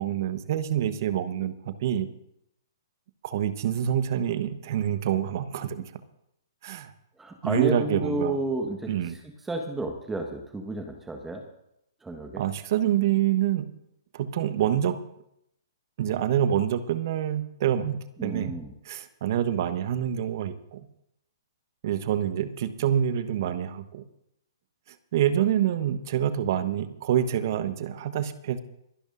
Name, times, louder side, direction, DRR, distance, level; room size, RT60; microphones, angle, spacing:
voice 1, 0.0-2.1 3.2-5.9 6.6-6.9 7.4-8.4 8.9-9.2 12.4-13.7 14.1-15.0 16.0-18.6 18.8-20.9 21.8-24.0 25.1-28.6, right 10 dB, 50° right, 12 dB, 1.1 m, -26 dB
voice 2, 7.2-9.2 9.5-11.4 12.0-12.4 18.2-18.7, right 2 dB, 10° right, 3 dB, 1.4 m, -31 dB
25.5 x 12.0 x 2.6 m, 0.80 s
figure-of-eight pair, 125°, 2 cm